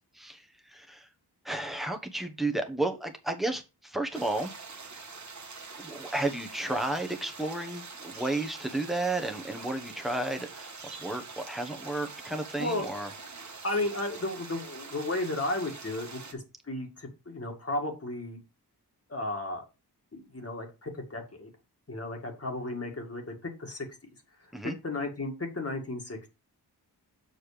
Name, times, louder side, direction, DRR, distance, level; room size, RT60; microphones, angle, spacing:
voice 1, 0.7-1.1 1.4-4.5 5.8-10.7 11.0-13.1 24.5-24.7, right 2 dB, ahead, 1.2 m, -32 dB
sound 1, 4.1-16.3, right 4 dB, 45° right, 1.3 m, -45 dB
voice 2, 13.6-18.4 19.1-19.6 20.1-21.5 21.9-23.3 23.6-23.9 24.4-24.5 24.8-26.3, left 2 dB, 35° left, 1.9 m, -34 dB
7.1 x 4.3 x 4.9 m
wide cardioid pair, 100°, 40 cm